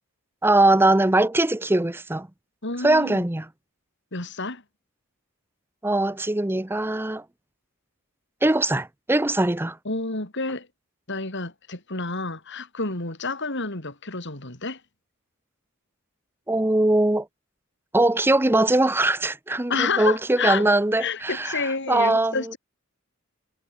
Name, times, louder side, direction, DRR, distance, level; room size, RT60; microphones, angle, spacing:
voice 1, 0.4-2.3 2.8-3.5 5.8-7.2 8.4-9.8 16.5-17.3 17.9-22.5, right 2 dB, 10° right, 0.6 m, -21 dB
voice 2, 2.6-3.2 4.1-4.6 9.8-10.7 11.1-14.8 19.7-22.6, left 4 dB, 55° left, 4.5 m, -29 dB
head